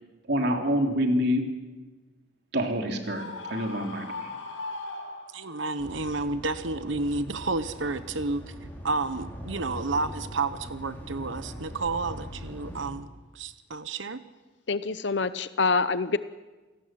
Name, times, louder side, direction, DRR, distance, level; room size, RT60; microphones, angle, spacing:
voice 1, 0.3-1.4 2.5-4.3, equal, 55° right, 3 dB, 3.4 m, -26 dB
Screaming, 3.0-5.7, left 3 dB, 85° left, 5.8 m, -38 dB
voice 2, 5.3-8.4 8.8-13.1 13.3-14.2, right 3 dB, 75° right, 12 dB, 1.1 m, -30 dB
sound 1, 5.8-12.9, equal, 10° left, 4.5 m, -41 dB
voice 3, 14.7-16.2, left 4 dB, 65° left, 13 dB, 0.8 m, -26 dB
28.5 x 18.5 x 7.7 m, 1.2 s
head